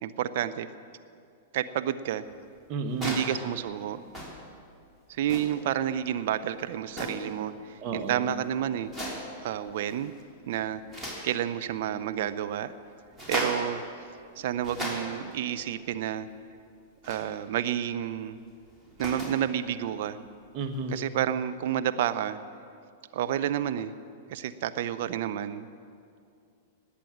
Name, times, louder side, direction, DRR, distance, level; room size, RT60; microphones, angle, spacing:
voice 1, 0.0-0.7 1.5-2.2 3.0-4.0 5.1-8.9 9.4-10.1 10.5-10.8 11.2-12.7 13.3-13.8 14.4-16.3 17.0-18.4 19.0-20.2 20.9-22.4 23.1-23.9 24.3-25.7, right 10 dB, 55° right, 11 dB, 0.6 m, -30 dB
voice 2, 2.7-3.2 7.8-8.3 20.5-21.0, right 3 dB, 40° right, 4 dB, 1.6 m, -32 dB
sound 1, 2.9-3.4 4.1-4.5 5.2-5.6 6.9-7.4 8.8-9.4 9.8-10.2 10.5-11.3 13.1-13.7 14.4-15.3 17.0-17.3 18.7-19.4 20.9-21.0, equal, 5° right, 3.3 m, -36 dB
19.5 x 8.5 x 7.4 m, 2.4 s
figure-of-eight pair, 100°, 0 cm